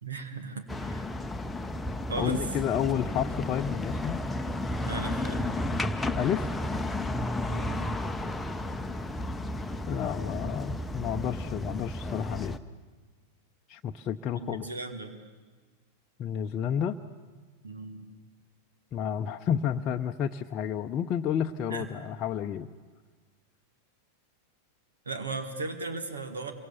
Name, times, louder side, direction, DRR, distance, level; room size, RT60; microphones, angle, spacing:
voice 1, 0.0-1.1 2.1-2.4 4.8-5.4 7.5-8.0 14.4-15.2 17.6-18.1 21.7-22.0 25.1-26.5, right 3 dB, 70° right, 7 dB, 2.1 m, -37 dB
sound 1, 0.7-12.6, left 1 dB, 5° left, 0.9 m, -33 dB
voice 2, 2.2-4.2 6.1-6.5 9.9-12.6 13.7-14.7 16.2-17.0 18.9-22.7, left 9 dB, 30° left, 4 dB, 0.7 m, -30 dB
27.0 x 23.5 x 7.1 m, 1.4 s
figure-of-eight pair, 90°, 0 cm